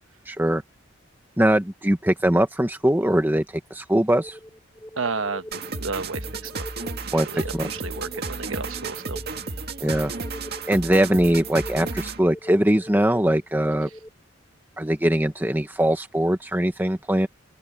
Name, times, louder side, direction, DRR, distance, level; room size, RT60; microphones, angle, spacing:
voice 1, 0.3-0.6 1.4-4.4 7.1-7.7 9.8-10.1 10.7-13.9 14.8-17.3, right 1 dB, 10° right, 1.0 m, -21 dB
sound 1, 4.1-14.1, equal, 10° left, 6.6 m, -42 dB
voice 2, 5.0-6.6 7.0-9.2, right 4 dB, 85° right, 1.2 m, -32 dB
sound 2, 5.5-12.3, right 4 dB, 50° right, 2.1 m, -33 dB
open air
head